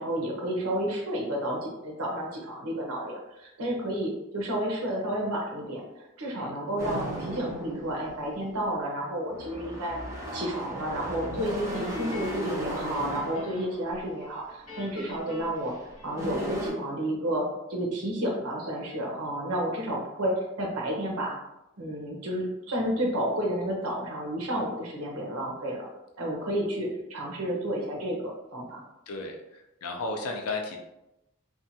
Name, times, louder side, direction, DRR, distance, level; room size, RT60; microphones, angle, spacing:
voice 1, 0.0-10.0 10.3-21.3 21.8-25.9 26.2-28.8, right 1 dB, 80° right, -1 dB, 0.8 m, -31 dB
sound 1, 6.8-8.4 9.2-14.1 14.7-15.0 15.7-15.8 16.0-16.7, equal, 15° right, 0.5 m, -36 dB
Guitar, 11.7-13.9 14.2-16.5, left 1 dB, 65° left, 1.1 m, -46 dB
voice 2, 29.1-30.8, left 3 dB, 85° left, 3 dB, 0.5 m, -34 dB
2.7 x 2.2 x 2.7 m, 0.91 s
head